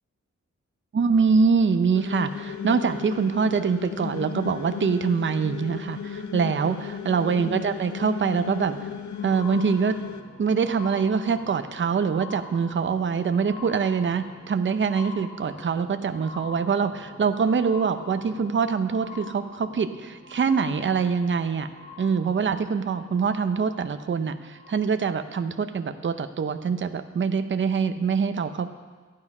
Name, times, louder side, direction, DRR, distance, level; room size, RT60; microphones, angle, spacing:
voice 1, 0.9-8.8 9.2-10.0 10.4-21.7 22.0-28.7, right 5 dB, 40° right, 9 dB, 0.6 m, -24 dB
sound 1, 1.9-10.2, left 8 dB, 75° left, 0.8 m, -35 dB
sound 2, 8.4-25.3 26.0-26.1, left 3 dB, 25° left, 4.5 m, -45 dB
13.5 x 9.6 x 5.4 m, 1.4 s
wide cardioid pair, 100°, 29 cm